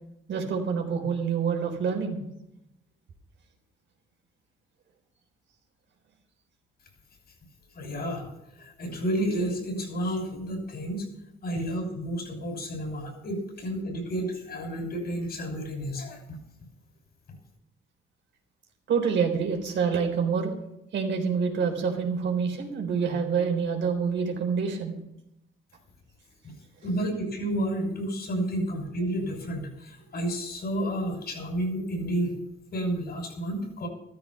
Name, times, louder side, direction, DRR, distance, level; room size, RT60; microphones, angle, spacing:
voice 1, 0.3-2.2 18.9-20.5 20.9-24.9, right 6 dB, 65° right, 3 dB, 4.0 m, -27 dB
voice 2, 7.7-8.3 8.5-11.0 11.4-16.2 26.8-32.3 32.7-33.9, right 1 dB, 55° left, 4 dB, 6.2 m, -31 dB
13.5 x 13.5 x 5.6 m, 0.84 s
cardioid pair, 90°, 20 cm